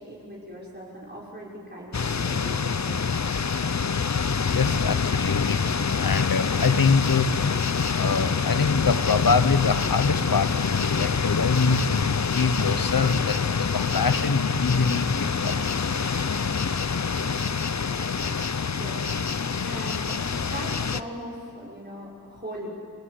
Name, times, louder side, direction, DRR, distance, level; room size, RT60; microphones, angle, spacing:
voice 1, 0.0-3.1 18.7-18.9 19.3-22.7, right 1 dB, 30° right, -5 dB, 6.0 m, -40 dB
sound 1, 1.9-21.0, left 5 dB, 55° left, 0.8 m, -26 dB
voice 2, 4.5-5.6 6.0-7.3 8.0-16.2, left 5 dB, 90° left, 12 dB, 1.0 m, -25 dB
29.5 x 21.0 x 8.3 m, 2.4 s
wide cardioid pair, 55°, 33 cm